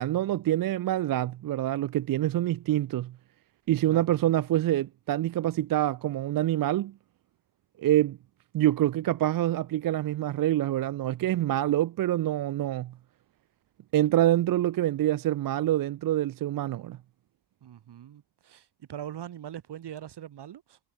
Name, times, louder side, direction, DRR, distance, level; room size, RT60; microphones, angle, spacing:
voice 1, 0.0-3.2 3.7-6.9 7.8-8.2 8.5-12.9 13.9-17.0, right 13 dB, 55° right, 0.5 m, -26 dB
voice 2, 17.6-20.8, right 10 dB, 70° right, 2.8 m, -42 dB
wide cardioid pair, 130°, 42 cm